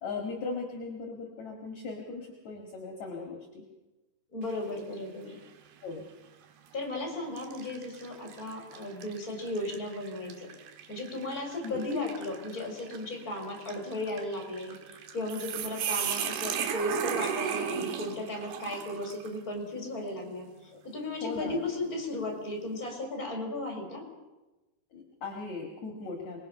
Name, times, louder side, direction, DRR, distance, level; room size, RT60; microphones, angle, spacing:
voice 1, 0.0-3.6 5.8-6.1 11.6-11.8 20.7-20.8 21.2-21.6 24.9-26.4, left 4 dB, 50° left, 2 dB, 3.1 m, -38 dB
voice 2, 4.3-5.4 6.7-10.5 10.9-24.1, left 2 dB, 20° left, 2 dB, 4.7 m, -35 dB
sound 1, 4.4-4.9 5.4-5.6 6.5-6.8 7.4-19.4, right 8 dB, 80° right, 3.3 m, -37 dB
26.0 x 21.0 x 5.6 m, 1.1 s
omnidirectional pair, 4.5 m